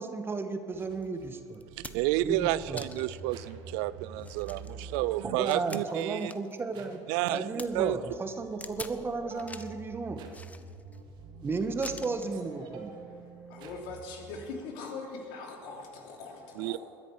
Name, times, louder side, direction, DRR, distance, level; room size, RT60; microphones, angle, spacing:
voice 1, 0.0-1.6 2.2-2.8 5.2-10.2 11.4-12.9, right 4 dB, 25° right, 1.3 m, -34 dB
sound 1, 0.7-14.4, right 4 dB, 60° right, 1.9 m, -48 dB
sound 2, 1.0-1.1 1.5-2.2 2.8-3.2 3.7-3.8 4.2-6.6 6.9-7.7 8.6-9.0 9.4-9.8 10.3-11.0 11.8-12.4 13.4-13.6, left 3 dB, 15° left, 0.8 m, -45 dB
voice 2, 1.9-6.3 7.1-8.0 16.6-16.8, right 16 dB, 75° right, 0.4 m, -30 dB
voice 3, 12.7-16.8, left 3 dB, 75° left, 3.0 m, -42 dB
21.0 x 10.5 x 4.8 m
supercardioid pair, 90°, 9 cm